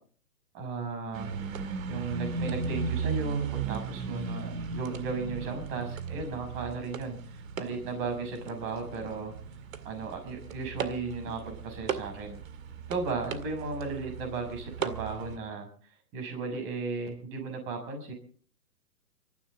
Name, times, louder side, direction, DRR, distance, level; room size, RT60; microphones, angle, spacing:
voice 1, 0.5-1.3 1.9-9.3 9.8-12.4 12.9-15.7 16.1-18.1, right 4 dB, 30° right, 4 dB, 6.5 m, -35 dB
sound 1, 1.1-15.4, right 6 dB, 60° right, 2.2 m, -36 dB
24.0 x 14.5 x 3.9 m, 0.44 s
hypercardioid pair, 140°, 45 cm